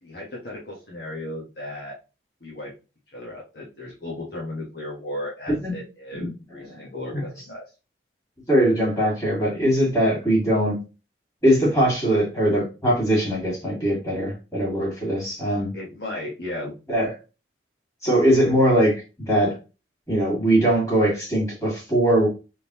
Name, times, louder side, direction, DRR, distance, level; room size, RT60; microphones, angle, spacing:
voice 1, 0.0-2.0 2.4-2.7 3.1-7.6 15.7-16.7, left 1 dB, 55° left, 1.4 m, -35 dB
voice 2, 5.5-5.8 6.1-6.3 6.6-6.8 7.1-7.2 8.5-10.8 11.4-15.7 16.9-17.1 18.0-19.6 20.1-22.3, right 1 dB, 15° left, 2.4 m, -21 dB
3.9 x 3.5 x 3.1 m
head